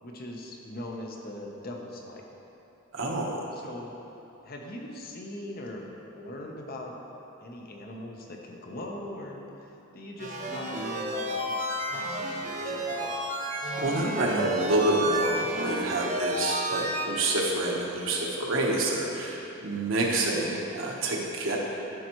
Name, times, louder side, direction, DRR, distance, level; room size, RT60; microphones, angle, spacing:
voice 1, 0.0-2.2 3.5-3.9 4.4-5.8 6.1-6.9 7.4-9.7 9.9-11.5 11.9-13.3, left 1 dB, 50° left, 1 dB, 0.9 m, -40 dB
voice 2, 2.9-3.4 13.8-21.6, right 1 dB, 80° right, -2 dB, 1.1 m, -28 dB
sound 1, 10.2-17.0, right 1 dB, 40° right, 0.7 m, -31 dB
12.0 x 5.4 x 3.1 m, 2.9 s
head